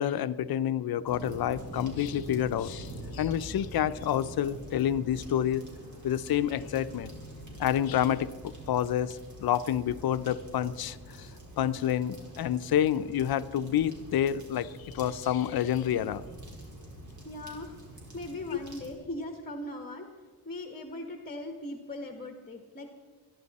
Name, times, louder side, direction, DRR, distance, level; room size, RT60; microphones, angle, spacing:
voice 1, 0.0-5.7 6.0-7.1 7.6-11.3 11.6-16.2, left 10 dB, 70° left, 14 dB, 0.7 m, -28 dB
sound 1, 1.0-18.9, right 1 dB, 50° right, 4.7 m, -45 dB
voice 2, 17.2-17.7 18.1-20.1 20.4-22.9, left 1 dB, 20° left, 4 dB, 1.4 m, -39 dB
24.5 x 11.0 x 4.2 m, 1.5 s
cardioid pair, 95°, 39 cm